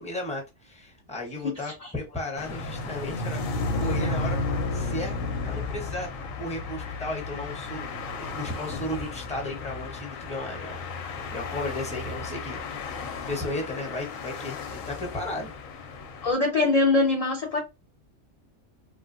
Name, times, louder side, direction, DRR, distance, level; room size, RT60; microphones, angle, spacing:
voice 1, 0.0-4.4 4.7-5.1 5.4-7.9 8.2-12.6 13.3-15.5, left 1 dB, 5° left, 0.7 m, -35 dB
sound 1, 2.4-16.3, left 3 dB, 90° left, 1.0 m, -33 dB
voice 2, 16.2-17.6, left 3 dB, 55° left, 0.4 m, -22 dB
3.2 x 2.1 x 2.5 m
omnidirectional pair, 1.3 m